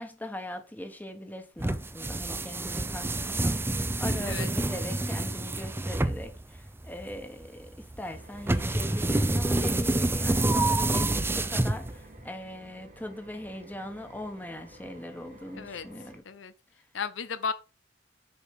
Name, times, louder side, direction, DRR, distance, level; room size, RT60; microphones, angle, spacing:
voice 1, 0.0-16.2, left 1 dB, 10° left, 1.3 m, -40 dB
sound 1, 1.6-12.2, right 2 dB, 10° right, 0.5 m, -28 dB
sound 2, 8.1-16.2, right 1 dB, 45° right, 1.7 m, -51 dB
voice 2, 15.6-15.9 16.2-16.5 16.9-17.5, left 5 dB, 70° left, 0.6 m, -34 dB
7.0 x 5.1 x 4.9 m
head